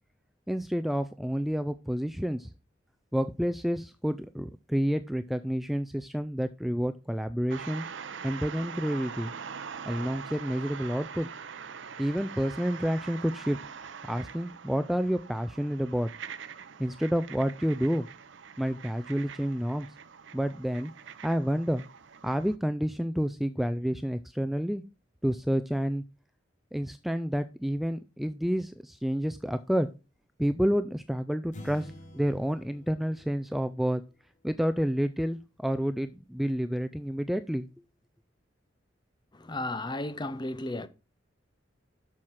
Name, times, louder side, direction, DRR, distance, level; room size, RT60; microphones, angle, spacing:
voice 1, 0.5-2.5 3.1-7.9 8.2-9.3 9.9-11.3 12.0-13.6 14.0-16.1 16.8-18.1 18.6-19.9 20.3-20.9 21.2-21.8 22.2-24.8 25.2-26.0 26.7-29.9 30.4-34.0 34.4-37.7, equal, ahead, 0.4 m, -29 dB
sound 1, 7.5-22.6, right 6 dB, 75° right, 0.6 m, -43 dB
sound 2, 31.5-34.2, left 1 dB, 45° left, 2.2 m, -48 dB
voice 2, 39.3-40.9, left 2 dB, 25° left, 0.7 m, -34 dB
7.5 x 6.4 x 5.7 m
head